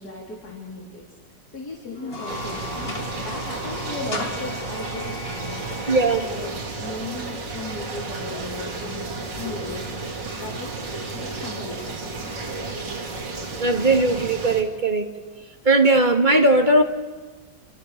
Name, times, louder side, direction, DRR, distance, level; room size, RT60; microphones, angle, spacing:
voice 1, 0.0-2.9 3.2-5.9 6.2-10.7 11.1-12.5, left 2 dB, 60° left, -3 dB, 4.3 m, -37 dB
sound 1, 2.0-6.3, left 3 dB, 35° left, 2.5 m, -35 dB
sound 2, 2.3-14.6, right 3 dB, 85° right, 3.3 m, -32 dB
voice 2, 5.9-6.3 13.6-15.1 15.6-16.8, right 2 dB, 25° right, 4 dB, 2.3 m, -18 dB
28.5 x 27.5 x 6.8 m, 1.3 s
omnidirectional pair, 1.9 m